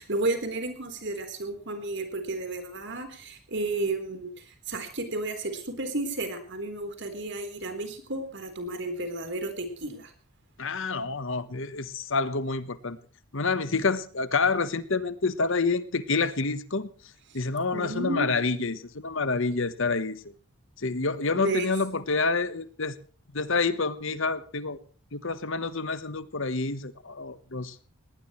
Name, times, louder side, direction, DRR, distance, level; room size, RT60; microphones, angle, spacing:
voice 1, 0.0-10.1 17.3-17.4 17.7-18.3 18.5-18.8 21.3-21.7, right 2 dB, 50° right, 7 dB, 3.9 m, -32 dB
voice 2, 10.6-13.0 13.3-16.9 17.3-20.3 20.8-22.9 23.3-24.8 25.1-27.7, left 4 dB, 60° left, 14 dB, 1.1 m, -28 dB
19.5 x 18.5 x 3.2 m, 0.42 s
head